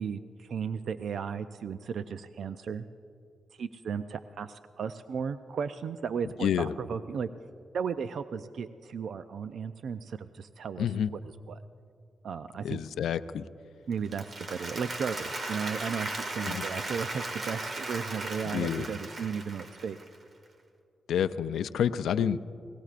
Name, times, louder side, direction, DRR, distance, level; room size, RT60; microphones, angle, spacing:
voice 1, 0.0-2.9 3.6-7.3 7.7-10.9 11.2-11.6 12.2-12.8 13.9-20.0, right 6 dB, 75° right, 11 dB, 0.4 m, -35 dB
voice 2, 6.4-6.7 10.8-11.1 12.6-13.4 16.4-16.6 18.5-18.9 21.1-22.4, left 9 dB, 85° left, 12 dB, 0.4 m, -28 dB
Applause, 13.9-20.2, right 2 dB, 55° right, 1.8 m, -37 dB
26.5 x 18.5 x 2.5 m, 2.6 s
cardioid pair, 60°, 0 cm